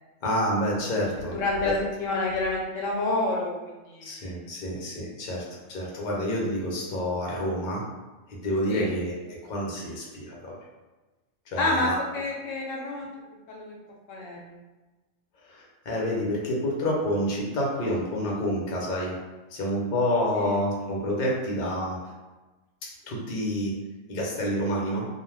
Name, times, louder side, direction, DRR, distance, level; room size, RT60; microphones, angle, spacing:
voice 1, 0.2-1.4 4.0-5.4 5.7-7.8 8.3-10.5 11.5-11.9 15.9-19.2 19.6-22.0 23.1-23.7 24.1-25.1, equal, 50° left, -3 dB, 0.7 m, -28 dB
voice 2, 1.2-4.3 8.7-8.9 11.6-13.1 13.5-13.7 14.1-14.6 20.3-20.6, left 2 dB, 75° left, -1 dB, 0.9 m, -29 dB
2.3 x 2.3 x 3.2 m, 1.2 s
omnidirectional pair, 1.4 m